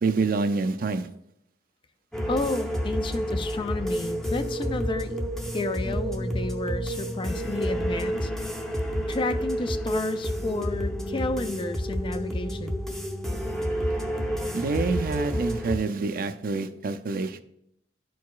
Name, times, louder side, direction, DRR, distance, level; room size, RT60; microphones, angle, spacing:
voice 1, 0.0-1.1 14.5-17.4, right 4 dB, 55° right, 9 dB, 0.5 m, -27 dB
sound 1, 2.1-15.8, equal, ahead, 0.7 m, -29 dB
voice 2, 2.3-5.2 5.5-8.3 9.1-12.8, left 3 dB, 30° left, 10 dB, 0.3 m, -31 dB
11.5 x 4.7 x 2.3 m, 0.75 s
head